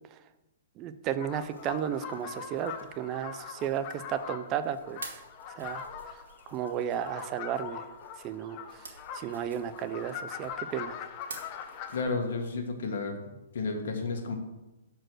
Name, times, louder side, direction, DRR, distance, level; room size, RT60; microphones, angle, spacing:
voice 1, 0.8-5.2 5.5-6.2 6.5-7.9 8.2-11.1, right 9 dB, 30° right, 11 dB, 0.4 m, -34 dB
sound 1, 1.2-12.0, left 8 dB, 35° left, 0.8 m, -42 dB
sound 2, 1.3-12.5, right 3 dB, 85° right, 1.6 m, -51 dB
voice 2, 11.9-13.2 13.5-14.4, left 4 dB, 70° left, 4 dB, 1.5 m, -32 dB
6.2 x 4.6 x 6.2 m, 1.0 s
hypercardioid pair, 140°, 0 cm